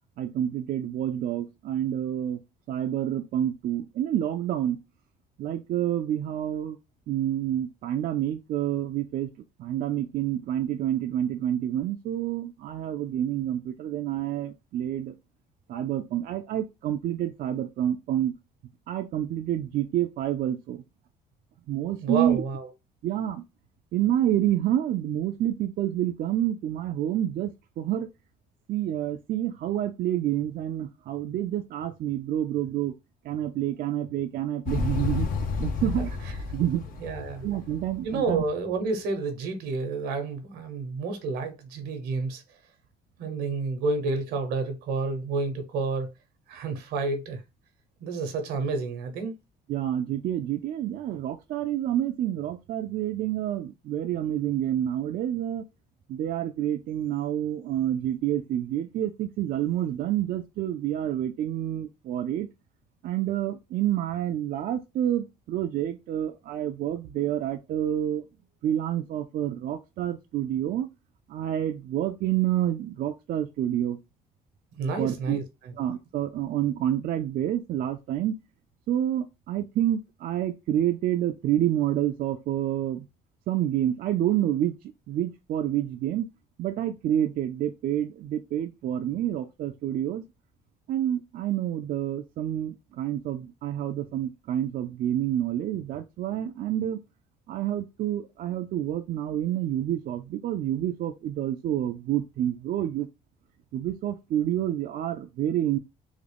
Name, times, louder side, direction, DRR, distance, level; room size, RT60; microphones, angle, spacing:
voice 1, 0.2-2.4 2.7-4.8 5.4-6.8 7.1-9.3 9.6-15.2 15.7-18.3 18.9-20.8 21.7-22.4 23.0-23.4 23.9-28.1 28.7-32.9 33.2-36.2 36.5-36.8 37.4-38.4 49.7-55.6 56.1-62.5 63.0-68.2 68.6-70.9 71.3-74.0 75.0-75.4 75.8-78.4 78.9-83.1 83.5-84.8 85.1-86.3 86.6-90.2 90.9-97.0 97.5-103.1 103.7-105.8, right 11 dB, 60° right, 0.4 m, -28 dB
voice 2, 22.0-22.7 37.0-37.4 38.0-42.4 43.2-46.1 46.5-47.4 48.0-49.4 74.7-75.7, right 3 dB, 85° right, 1.0 m, -30 dB
Motorcycle, 34.7-38.6, left 5 dB, 55° left, 0.6 m, -31 dB
3.6 x 2.1 x 3.4 m
cardioid pair, 110°, 17 cm